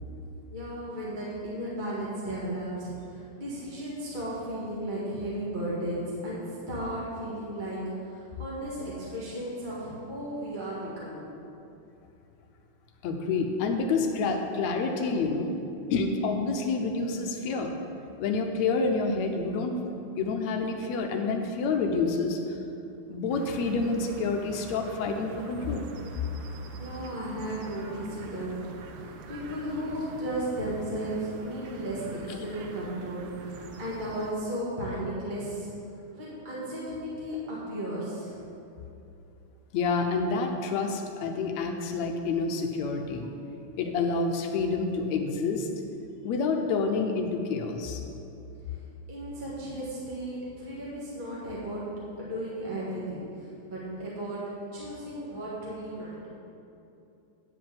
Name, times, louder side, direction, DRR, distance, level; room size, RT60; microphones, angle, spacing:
voice 1, 0.5-11.3 26.8-28.5 28.9-35.7 36.1-38.4 48.7-48.8 49.1-51.9 52.2-54.4 54.7-56.3, right 1 dB, 20° right, -7 dB, 1.4 m, -35 dB
voice 2, 13.0-15.5 15.9-17.7 18.2-19.9 20.2-22.6 23.1-25.9 39.7-43.3 43.8-45.7 46.2-48.0, left 4 dB, 75° left, 3 dB, 1.9 m, -28 dB
sound 1, 23.3-34.3, right 4 dB, 80° right, 2.1 m, -45 dB
10.0 x 4.9 x 7.6 m, 2.7 s
omnidirectional pair, 3.5 m